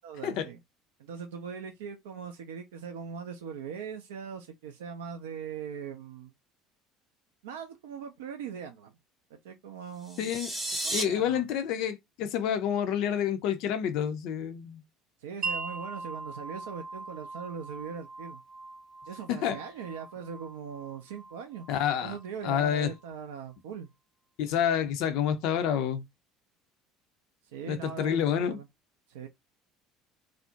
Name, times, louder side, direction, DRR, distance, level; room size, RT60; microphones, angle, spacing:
voice 1, 0.0-0.6 1.0-6.3 7.4-8.9 9.3-10.3 10.8-11.4 15.2-18.4 19.1-21.7 22.0-23.9 27.5-28.7 29.1-29.3, right 7 dB, 70° right, 0.3 m, -40 dB
sound 1, 10.0-11.0, right 1 dB, 10° right, 0.7 m, -33 dB
voice 2, 10.2-10.5 10.9-14.8 19.3-19.6 21.7-22.2 22.4-22.9 24.4-26.0 27.7-28.6, left 9 dB, 55° left, 0.4 m, -28 dB
Wind chime, 15.4-23.1, right 4 dB, 45° right, 0.7 m, -41 dB
2.4 x 2.0 x 2.6 m
figure-of-eight pair, 60°, 0 cm